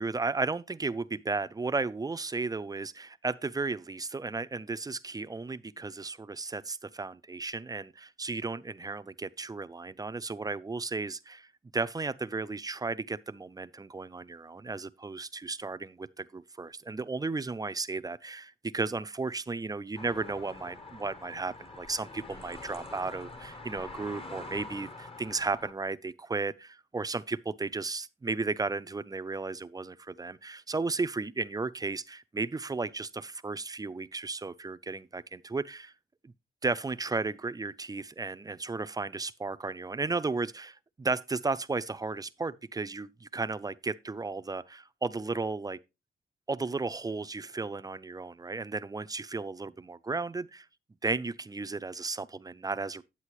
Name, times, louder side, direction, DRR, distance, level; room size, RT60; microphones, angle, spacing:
voice 1, 0.0-35.9 36.6-45.8 46.5-50.7 51.0-53.0, right 3 dB, 20° right, 0.5 m, -34 dB
sound 1, 20.0-25.7, left 2 dB, 35° left, 1.1 m, -45 dB
9.8 x 8.1 x 3.1 m
cardioid pair, 95°, 17 cm